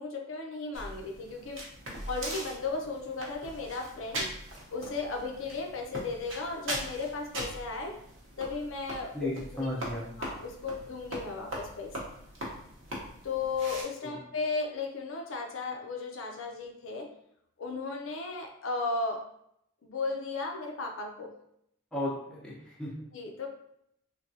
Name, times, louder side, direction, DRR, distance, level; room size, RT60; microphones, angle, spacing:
voice 1, 0.0-1.6 2.1-4.3 4.7-8.0 8.4-9.7 10.2-12.1 13.2-17.1 17.6-19.2 19.8-21.3 23.1-23.5, left 3 dB, 70° left, 2 dB, 0.5 m, -35 dB
sound 1, 0.7-13.8, right 1 dB, 60° right, 0.8 m, -41 dB
voice 2, 9.1-10.0 14.0-14.2 21.9-22.9, left 1 dB, 5° left, -6 dB, 0.7 m, -34 dB
3.6 x 2.2 x 2.7 m, 0.74 s
head